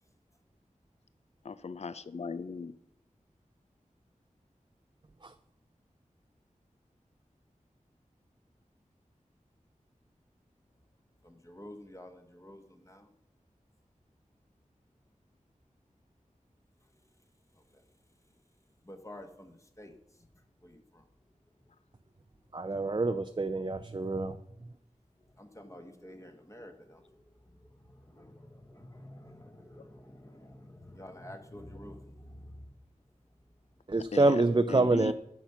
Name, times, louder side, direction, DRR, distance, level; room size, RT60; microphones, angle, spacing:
voice 1, 1.4-2.8 34.0-34.4 34.7-35.1, left 4 dB, 55° left, 15 dB, 0.5 m, -38 dB
voice 2, 11.2-13.1 17.5-17.8 18.8-21.1 21.6-21.7 25.2-32.7, left 1 dB, 20° left, 5 dB, 1.5 m, -50 dB
voice 3, 22.5-24.4 33.9-35.1, right 2 dB, 35° right, 8 dB, 0.5 m, -27 dB
10.5 x 7.1 x 5.8 m, 0.79 s
wide cardioid pair, 60°, 14 cm